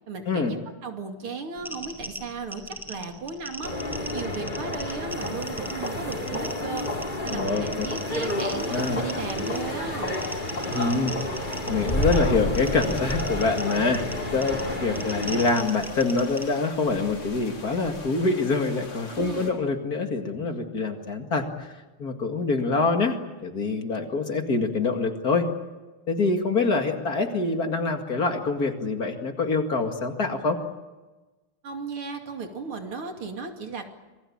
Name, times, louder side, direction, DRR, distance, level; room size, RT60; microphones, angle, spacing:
voice 1, 0.1-3.7 4.1-6.9 7.2-10.1 19.2-19.5 31.6-33.9, right 4 dB, 75° right, 4 dB, 3.4 m, -35 dB
sound 1, 1.6-16.4, equal, ahead, 4.6 m, -40 dB
sound 2, 3.6-15.5, left 1 dB, 20° left, 3.8 m, -30 dB
voice 2, 7.3-7.9 8.7-9.0 10.7-11.1 11.6-21.7 22.0-23.2 23.4-25.5 26.1-30.6, left 3 dB, 45° left, 5 dB, 2.5 m, -25 dB
sound 3, 8.1-19.5, left 2 dB, 80° left, 5.5 m, -43 dB
27.0 x 20.5 x 8.7 m, 1.2 s
omnidirectional pair, 2.4 m